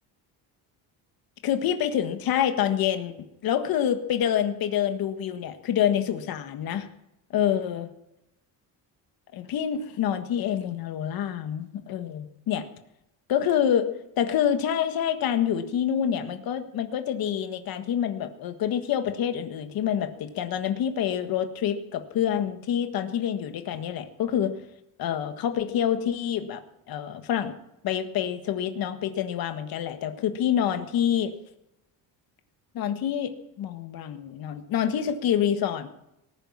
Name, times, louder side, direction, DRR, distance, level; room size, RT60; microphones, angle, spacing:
voice 1, 1.4-3.1 3.4-6.9 7.3-7.9 9.3-12.6 13.3-13.9 14.2-24.6 25.0-26.6 26.9-27.5 27.8-31.3 32.7-35.9, left 9 dB, 55° left, 7 dB, 1.6 m, -27 dB
19.0 x 10.0 x 7.4 m, 0.85 s
cardioid pair, 170°, 41 cm